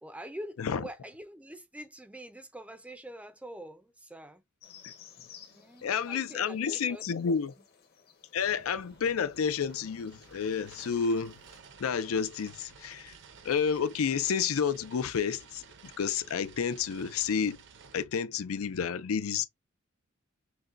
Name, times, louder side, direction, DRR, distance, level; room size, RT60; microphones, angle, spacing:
voice 1, 0.0-4.4 5.5-7.5, right 1 dB, 5° right, 0.5 m, -45 dB
sound 1, 4.6-11.6, left 8 dB, 50° left, 1.0 m, -57 dB
voice 2, 5.8-7.5 8.3-11.4 11.8-13.2 13.4-17.6 17.9-19.4, left 6 dB, 80° left, 0.5 m, -30 dB
sound 2, 8.4-18.0, right 6 dB, 60° right, 0.7 m, -54 dB
6.1 x 2.2 x 2.5 m
head